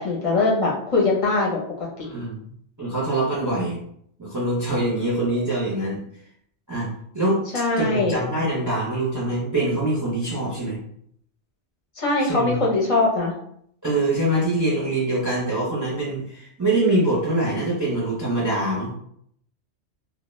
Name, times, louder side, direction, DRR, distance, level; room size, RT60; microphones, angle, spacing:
voice 1, 0.0-1.6 2.0-2.1 7.5-8.2 12.0-13.3, left 3 dB, 35° left, -4 dB, 0.7 m, -21 dB
voice 2, 2.0-2.4 2.8-3.8 4.2-6.0 6.7-6.9 7.1-10.8 12.2-12.6 13.8-18.9, right 1 dB, 20° right, -6 dB, 0.5 m, -24 dB
2.2 x 2.2 x 3.1 m, 0.68 s
omnidirectional pair, 1.2 m